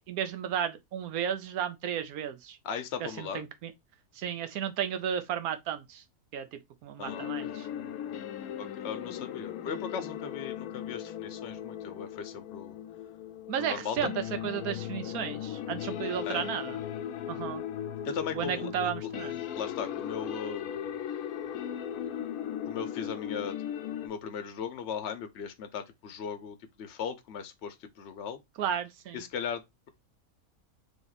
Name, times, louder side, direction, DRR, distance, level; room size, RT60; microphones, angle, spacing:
voice 1, 0.0-2.6 3.0-3.7 4.1-6.0 6.3-6.5 6.8-7.7 13.5-16.8 17.3-17.6 18.4-19.4 28.6-29.2, right 9 dB, 80° right, 1.1 m, -33 dB
voice 2, 2.6-3.4 7.0-7.6 8.6-12.8 13.6-14.1 16.2-16.5 18.0-19.1 19.5-20.9 22.7-23.6 24.0-28.4 29.1-29.9, left 7 dB, 55° left, 0.9 m, -38 dB
sound 1, 7.0-24.1, left 10 dB, 80° left, 1.1 m, -37 dB
3.6 x 3.0 x 3.9 m
omnidirectional pair, 1.5 m